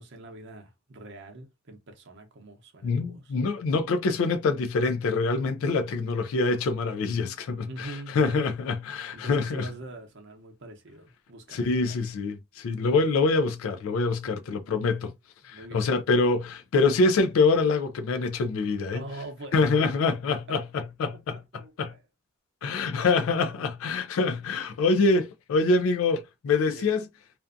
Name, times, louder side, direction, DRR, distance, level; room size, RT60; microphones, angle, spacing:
voice 1, 0.0-3.3 7.7-8.5 9.1-12.0 15.5-15.9 18.9-19.9 21.1-22.0 24.2-24.3 24.9-25.0 26.7-26.9, right 2 dB, 55° right, 0.7 m, -43 dB
voice 2, 2.8-9.7 11.5-15.1 15.4-19.0 19.5-21.9 22.6-27.1, left 3 dB, 75° left, 0.3 m, -25 dB
2.5 x 2.2 x 2.5 m
head